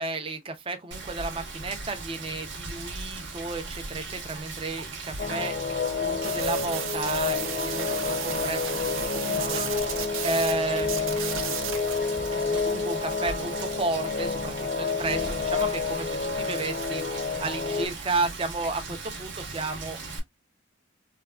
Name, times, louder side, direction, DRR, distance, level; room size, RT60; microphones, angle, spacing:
voice 1, 0.0-5.6 6.0-9.6 10.2-11.6 12.3-17.0 17.4-20.0, right 3 dB, 25° right, 0.5 m, -32 dB
Rain, 0.9-20.2, right 3 dB, 60° right, 0.9 m, -38 dB
sound 1, 5.2-17.9, left 5 dB, 45° left, 0.6 m, -29 dB
sound 2, 6.2-10.5 10.8-12.0, right 9 dB, 75° right, 0.5 m, -34 dB
3.3 x 2.2 x 2.3 m
head